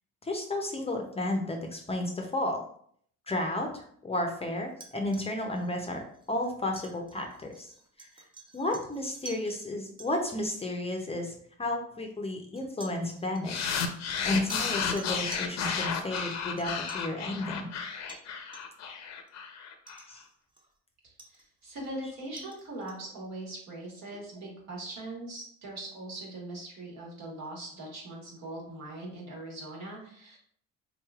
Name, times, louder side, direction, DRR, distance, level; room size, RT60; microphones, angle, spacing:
voice 1, 0.2-2.6 3.3-7.7 8.0-8.1 8.5-11.3 11.6-13.8 14.2-17.7 20.1-20.2 22.0-22.1, left 1 dB, 20° left, 2 dB, 0.6 m, -32 dB
sound 1, 4.7-9.6 10.0-10.1 11.1-11.2 12.6-17.1 18.1-18.3 18.5-18.9 19.3-19.4 19.9-20.8 21.2-23.1, right 3 dB, 15° right, 0.6 m, -50 dB
sound 2, 13.5-20.0, left 6 dB, 65° left, 0.6 m, -33 dB
voice 2, 21.0-30.4, right 1 dB, 65° right, -2 dB, 1.5 m, -41 dB
3.8 x 3.0 x 2.4 m, 0.62 s
cardioid pair, 90°, 29 cm